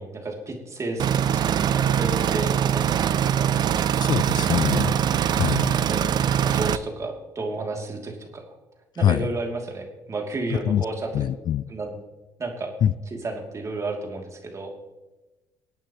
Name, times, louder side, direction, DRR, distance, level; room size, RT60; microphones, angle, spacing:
voice 1, 0.0-3.6 4.7-4.9 5.6-8.4 9.0-11.1 11.7-12.0 12.4-12.7 13.1-14.7, right 2 dB, 35° right, 2 dB, 2.9 m, -32 dB
sound 1, 1.0-6.8, right 9 dB, 50° right, 0.6 m, -22 dB
voice 2, 3.9-4.9 5.3-5.7 9.0-9.3 10.5-10.9 11.1-11.6 12.8-12.9, left 10 dB, 50° left, 18 dB, 0.4 m, -23 dB
22.5 x 8.9 x 3.1 m, 1.1 s
hypercardioid pair, 60°, 9 cm